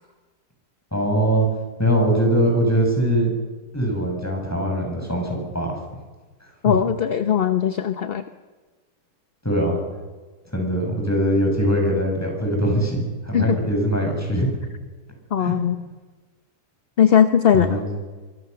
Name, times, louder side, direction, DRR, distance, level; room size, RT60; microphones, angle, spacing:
voice 1, 0.9-1.5 1.8-3.3 3.7-5.8 6.6-6.7 9.4-9.8 10.5-14.5 15.4-15.5 17.5-17.9, equal, 10° left, 1 dB, 7.4 m, -22 dB
voice 2, 6.6-8.2 13.3-13.6 15.3-15.7 17.0-17.8, left 8 dB, 45° left, 9 dB, 0.9 m, -19 dB
24.5 x 24.0 x 6.9 m, 1.3 s
omnidirectional pair, 1.8 m